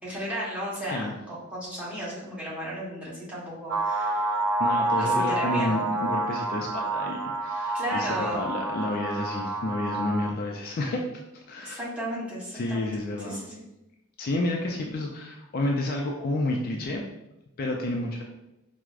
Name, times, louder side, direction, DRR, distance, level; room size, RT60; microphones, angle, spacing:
voice 1, 0.0-4.4 5.0-5.8 7.7-8.4 11.5-13.6 14.7-14.9, equal, 5° right, -8 dB, 0.9 m, -35 dB
sound 1, 3.7-10.3, right 2 dB, 60° right, 0.3 m, -28 dB
voice 2, 4.6-8.1 8.3-11.0 11.3-11.8 12.5-13.4 14.2-17.0 17.6-18.2, left 2 dB, 40° left, 0 dB, 0.3 m, -30 dB
4.6 x 2.0 x 2.4 m, 0.93 s
head